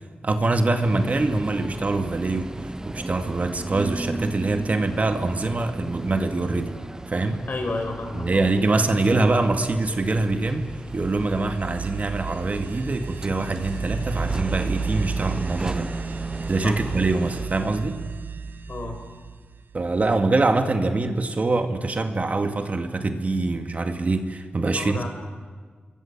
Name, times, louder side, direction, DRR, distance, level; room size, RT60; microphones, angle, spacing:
voice 1, 0.2-6.7 7.1-7.4 8.1-18.0 19.7-25.1, right 2 dB, 45° right, 6 dB, 2.1 m, -24 dB
sound 1, 0.8-17.5, right 2 dB, 20° right, 0.8 m, -36 dB
voice 2, 7.5-8.4 9.0-9.1 16.6-16.8 18.7-19.0 24.7-25.1, left 3 dB, 60° left, 4 dB, 5.4 m, -31 dB
sound 2, 10.1-20.4, right 5 dB, 70° right, 1.3 m, -33 dB
27.5 x 22.5 x 7.4 m, 1.5 s
cardioid pair, 75°, 4 cm